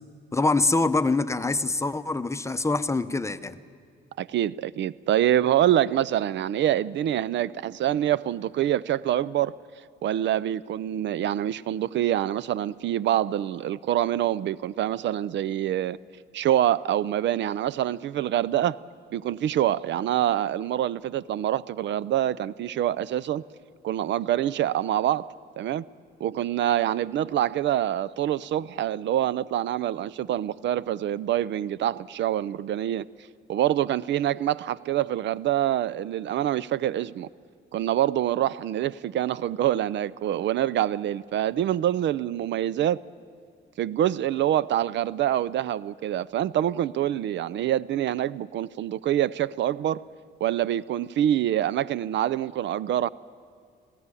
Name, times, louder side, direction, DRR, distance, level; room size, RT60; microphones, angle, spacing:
voice 1, 0.3-3.6, left 3 dB, 15° left, 0.8 m, -24 dB
voice 2, 4.2-9.5 10.0-16.0 16.3-18.8 19.1-23.4 23.8-25.8 26.2-33.1 33.5-37.3 37.7-43.0 43.8-50.0 50.4-53.1, right 12 dB, 65° right, 0.5 m, -25 dB
20.0 x 15.0 x 9.8 m
cardioid pair, 90°, 20 cm